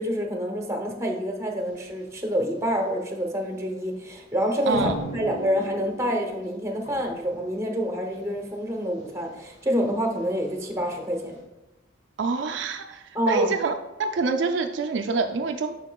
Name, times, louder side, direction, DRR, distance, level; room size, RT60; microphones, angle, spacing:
voice 1, 0.0-11.4 13.1-13.5, equal, 15° right, 2 dB, 0.8 m, -27 dB
sound 1, 1.6-11.4, left 2 dB, 75° left, 1.2 m, -48 dB
voice 2, 4.7-5.0 12.2-13.7 14.0-15.7, right 4 dB, 65° right, 4 dB, 0.4 m, -26 dB
Drum, 4.8-6.6, right 1 dB, 45° left, 0.6 m, -37 dB
7.2 x 5.7 x 2.3 m, 1.0 s
head